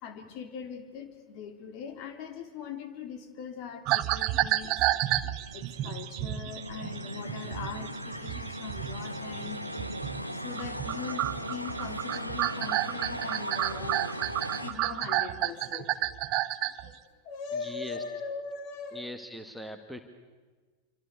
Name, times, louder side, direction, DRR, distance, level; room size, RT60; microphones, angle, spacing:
voice 1, 0.0-4.7 5.5-9.6 10.4-15.9 16.8-16.9 17.2-19.0, left 6 dB, 45° left, 8 dB, 3.2 m, -41 dB
sound 1, 3.8-10.3 10.6-16.9, right 15 dB, 40° right, 1.0 m, -31 dB
sound 2, 5.4-14.7, equal, 90° left, 1.9 m, -38 dB
voice 2, 17.5-18.0 18.9-20.0, left 1 dB, ahead, 8 dB, 1.9 m, -41 dB
28.0 x 25.5 x 8.3 m, 1.4 s
figure-of-eight pair, 90°, 0 cm